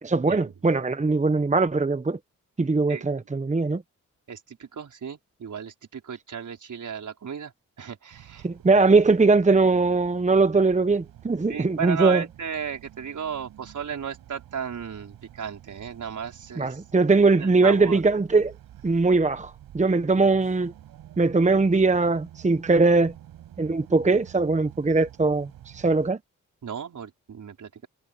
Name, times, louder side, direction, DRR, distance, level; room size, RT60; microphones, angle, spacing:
voice 1, 0.0-2.2 2.6-3.8 8.4-12.2 16.6-18.5 18.8-20.7 21.2-23.1 23.6-26.2, right 3 dB, 20° right, 1.1 m, -21 dB
voice 2, 2.9-3.3 4.3-7.5 7.8-8.5 11.5-16.8 17.4-18.0 26.6-27.9, right 7 dB, 60° right, 5.1 m, -35 dB
sound 1, 8.1-26.1, right 12 dB, 85° right, 6.4 m, -49 dB
supercardioid pair, 55°, 34 cm